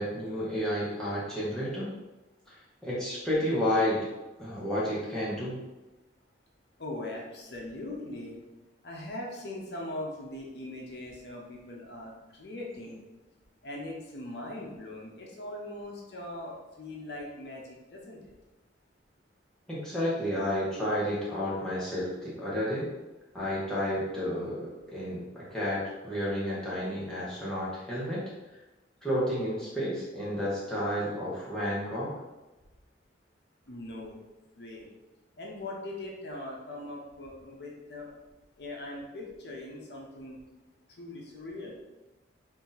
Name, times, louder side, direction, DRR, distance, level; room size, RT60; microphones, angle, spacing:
voice 1, 0.0-1.9 2.5-2.6 2.8-4.1 4.4-5.6 19.7-22.9 23.3-28.2 29.0-32.2, equal, 5° left, -9 dB, 1.0 m, -31 dB
voice 2, 6.8-8.4 8.8-13.0 13.6-18.2 33.7-34.1 34.6-34.9 35.4-38.1 38.6-40.4 41.0-41.8, left 1 dB, 60° left, -2 dB, 0.7 m, -40 dB
2.8 x 2.6 x 3.9 m, 1.1 s
head